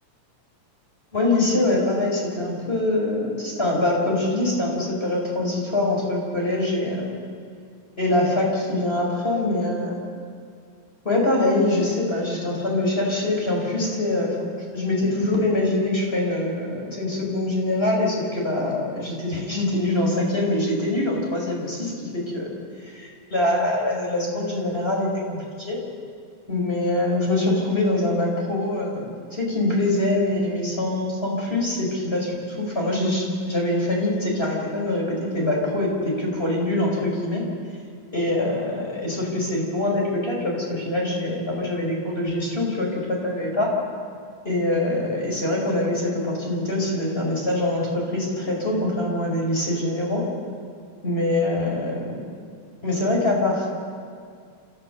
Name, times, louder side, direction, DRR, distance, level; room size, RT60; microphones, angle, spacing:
voice 1, 1.1-7.2 8.0-10.0 11.0-22.5 22.8-25.8 26.5-37.5 38.1-43.7 44.4-50.3 51.0-52.2 52.8-53.7, left 1 dB, 15° left, -2 dB, 4.9 m, -24 dB
27.5 x 16.0 x 6.7 m, 2.3 s
omnidirectional pair, 3.7 m